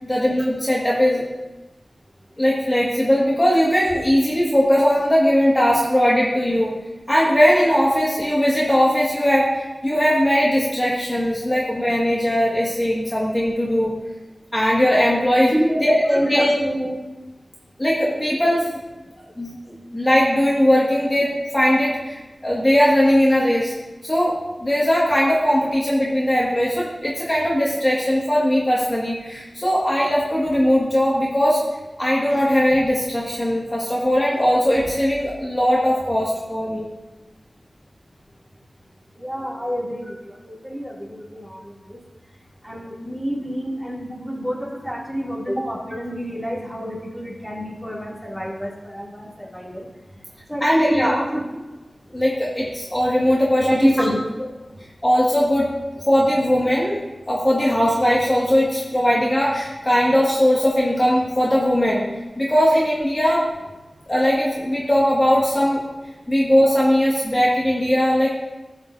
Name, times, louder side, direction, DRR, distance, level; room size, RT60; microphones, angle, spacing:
voice 1, 0.0-1.2 2.4-6.7 7.1-13.9 14.5-15.5 15.8-16.5 17.8-18.8 19.4-23.7 24.0-31.6 32.0-36.9 50.6-51.2 52.1-53.9 55.0-55.7 56.1-57.0 57.3-62.0 62.4-63.4 64.1-65.8 66.3-68.3, equal, 25° left, -6 dB, 2.1 m, -19 dB
voice 2, 16.1-17.0 39.2-42.0 42.6-49.9 50.5-51.4 53.6-54.2, equal, ahead, -5 dB, 2.9 m, -27 dB
15.5 x 5.9 x 2.8 m, 1.1 s
cardioid pair, 40°, 0 cm